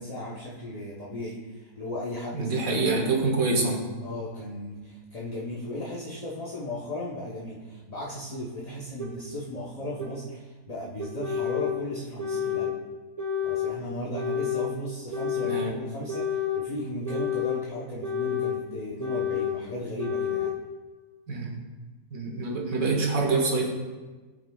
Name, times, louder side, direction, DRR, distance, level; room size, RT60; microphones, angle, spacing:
voice 1, 0.0-3.0 4.0-12.8 13.4-20.5, left 1 dB, 30° left, -6 dB, 0.8 m, -36 dB
voice 2, 2.3-3.9 15.4-15.8 21.3-21.5 22.1-23.7, right 3 dB, 60° right, 1 dB, 1.6 m, -26 dB
sound 1, 9.0-9.1 10.0-10.1 11.0-11.8 12.2-12.7 13.2-13.7 14.1-14.7 15.1-15.7 16.1-16.6 17.0-17.6 18.0-18.6 19.0-19.6 20.0-20.5, left 8 dB, 30° right, 1.0 m, -29 dB
15.0 x 5.8 x 2.3 m, 1.3 s
omnidirectional pair, 1.7 m